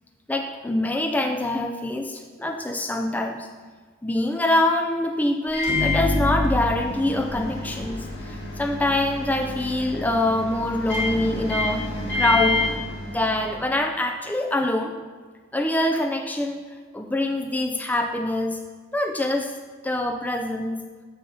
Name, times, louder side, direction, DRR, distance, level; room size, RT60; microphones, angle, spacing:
voice 1, 0.3-3.5 4.0-11.9 12.1-12.7 13.0-14.9 15.5-16.6 16.9-18.6 18.9-19.6 19.8-20.8, left 1 dB, 10° left, 4 dB, 0.4 m, -24 dB
Microwave oven, 5.5-13.6, left 2 dB, 60° left, 2.0 m, -28 dB
7.0 x 6.4 x 5.5 m, 1.5 s
head